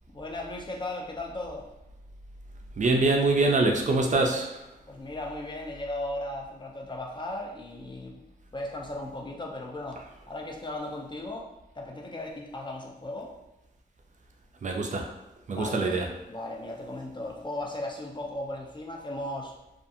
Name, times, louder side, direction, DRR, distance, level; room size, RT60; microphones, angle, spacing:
voice 1, 0.1-1.7 4.9-8.2 8.5-11.5 11.7-13.3 15.5-16.0 16.3-19.5, left 1 dB, 30° left, 0 dB, 0.4 m, -36 dB
voice 2, 2.8-4.6 14.6-15.1 15.5-16.1, right 3 dB, 50° right, 2 dB, 0.4 m, -24 dB
2.6 x 2.3 x 2.5 m, 0.91 s
wide cardioid pair, 110°, 16 cm